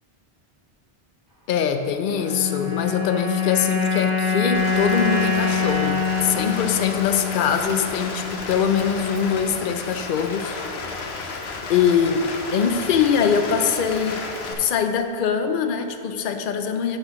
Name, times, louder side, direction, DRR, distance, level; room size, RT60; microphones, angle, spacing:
voice 1, 1.5-10.6 11.0-11.3 11.7-12.3 12.5-14.2 14.5-17.0, left 7 dB, 60° left, 7 dB, 0.7 m, -23 dB
sound 1, 2.1-8.5, left 5 dB, 20° left, 1.6 m, -24 dB
Rain, 4.5-14.5, left 4 dB, 80° left, 1.0 m, -32 dB
13.0 x 5.7 x 3.0 m, 2.4 s
omnidirectional pair, 1.1 m